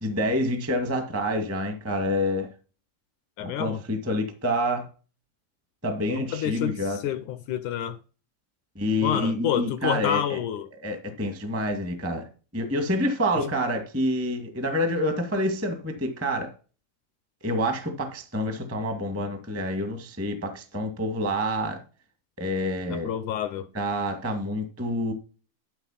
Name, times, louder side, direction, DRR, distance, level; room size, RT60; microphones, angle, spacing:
voice 1, 0.0-2.5 3.4-4.9 5.8-7.0 8.7-10.4 10.8-12.3 12.5-16.5 17.4-21.8 22.4-23.1 23.7-25.1, equal, 10° right, 0.7 m, -27 dB
voice 2, 3.4-3.8 6.1-8.0 9.0-10.7 22.9-23.7, left 10 dB, 80° left, 1.8 m, -28 dB
12.0 x 4.4 x 5.8 m
omnidirectional pair, 4.2 m